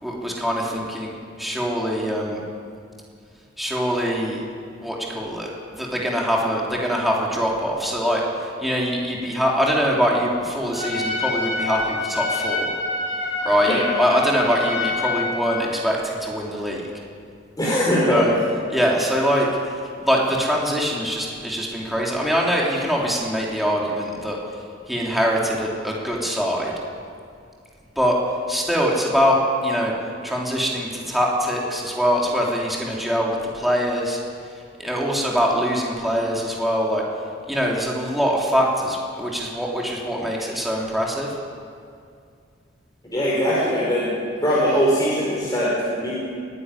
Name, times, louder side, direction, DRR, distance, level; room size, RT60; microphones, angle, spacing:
voice 1, 0.0-1.1 1.4-2.4 3.6-4.4 4.8-12.7 13.4-16.8 18.1-18.3 18.7-19.5 20.0-24.4 24.9-26.7 27.9-28.2 28.5-29.9 30.2-34.2 34.8-37.0 37.5-41.3, equal, ahead, -3 dB, 3.1 m, -23 dB
Trumpet, 10.7-15.6, left 3 dB, 85° left, 6.9 m, -27 dB
voice 2, 17.6-18.2 43.0-44.1 44.4-46.1, equal, 20° left, -7 dB, 4.7 m, -21 dB
23.5 x 11.0 x 9.9 m, 2.3 s
head